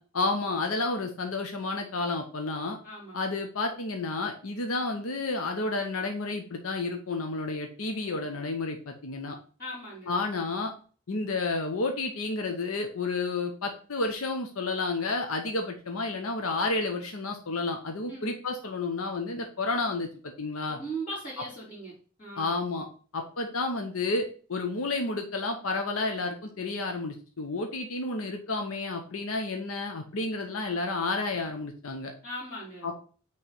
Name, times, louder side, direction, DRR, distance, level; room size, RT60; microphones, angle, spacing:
voice 1, 0.1-2.8 3.1-9.4 10.1-10.7 11.1-20.8 22.4-22.9 23.1-32.1 32.8-33.0, left 3 dB, 70° left, 4 dB, 0.8 m, -31 dB
voice 2, 2.8-3.2 9.6-10.1 18.1-18.3 20.7-21.9 22.2-22.6 32.2-32.9, right 1 dB, 40° left, -8 dB, 2.5 m, -39 dB
5.7 x 3.1 x 5.5 m, 0.40 s
head